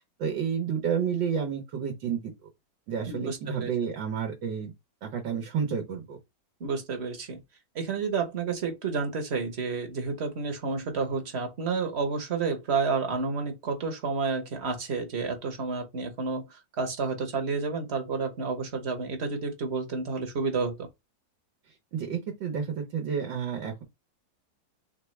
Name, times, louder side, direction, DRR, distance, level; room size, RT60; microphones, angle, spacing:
voice 1, 0.2-2.2 2.9-4.7 5.0-6.2 21.9-23.8, right 7 dB, 90° right, 1.6 m, -30 dB
voice 2, 3.1-3.7 6.6-7.4 7.7-20.9, right 4 dB, 45° right, 1.0 m, -30 dB
3.8 x 3.4 x 3.2 m
omnidirectional pair, 2.0 m